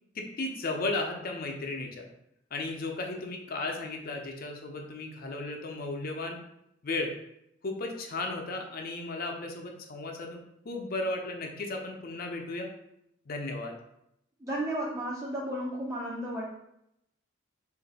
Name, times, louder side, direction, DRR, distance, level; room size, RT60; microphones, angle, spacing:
voice 1, 0.1-2.1 2.5-6.4 6.8-7.1 7.6-12.7 13.3-13.8, left 2 dB, 50° left, 2 dB, 0.6 m, -35 dB
voice 2, 14.4-16.5, right 1 dB, 15° right, -5 dB, 0.5 m, -33 dB
3.1 x 2.5 x 4.0 m, 0.79 s
head